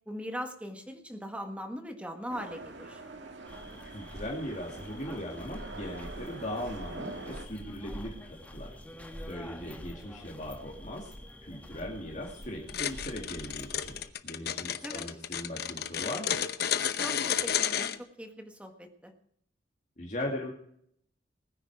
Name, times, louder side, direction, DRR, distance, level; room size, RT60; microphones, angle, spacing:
voice 1, 0.1-3.0 9.6-9.8 14.8-15.0 17.0-19.1, equal, 5° right, 5 dB, 1.6 m, -40 dB
sound 1, 2.3-7.5, right 3 dB, 85° right, 1.9 m, -45 dB
sound 2, 3.5-14.1, equal, 10° left, 1.5 m, -46 dB
voice 2, 3.9-8.7 9.2-11.1 11.4-16.4 20.0-20.5, left 1 dB, 40° left, -1 dB, 2.4 m, -39 dB
sound 3, 12.7-18.0, left 9 dB, 60° left, 0.8 m, -31 dB
20.5 x 9.8 x 4.8 m, 0.69 s
head